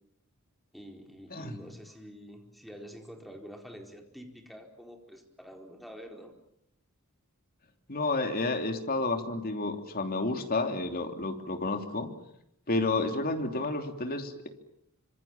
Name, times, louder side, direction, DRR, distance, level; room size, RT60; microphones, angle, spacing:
voice 1, 0.7-6.3, equal, ahead, 3 dB, 4.5 m, -47 dB
voice 2, 1.3-1.6 7.9-12.1 12.7-14.5, left 2 dB, 45° left, 5 dB, 3.2 m, -30 dB
26.0 x 26.0 x 7.4 m, 0.77 s
head